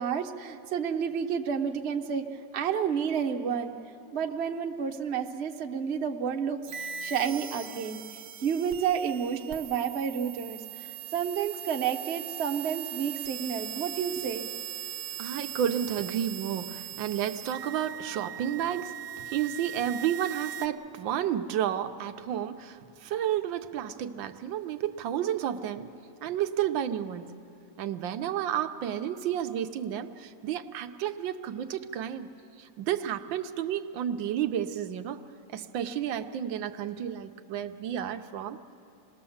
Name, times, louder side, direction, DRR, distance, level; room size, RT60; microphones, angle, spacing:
voice 1, 0.0-2.2 2.5-3.7 4.1-8.0 8.4-14.5, right 7 dB, 45° right, 4 dB, 1.0 m, -30 dB
sound 1, 6.7-20.7, right 10 dB, 65° right, 1.2 m, -40 dB
voice 2, 15.2-25.9 26.2-27.3 27.8-32.3 32.6-35.2 35.5-38.7, right 10 dB, 85° right, 8 dB, 1.5 m, -31 dB
27.0 x 19.5 x 7.1 m, 2.6 s
omnidirectional pair, 2.0 m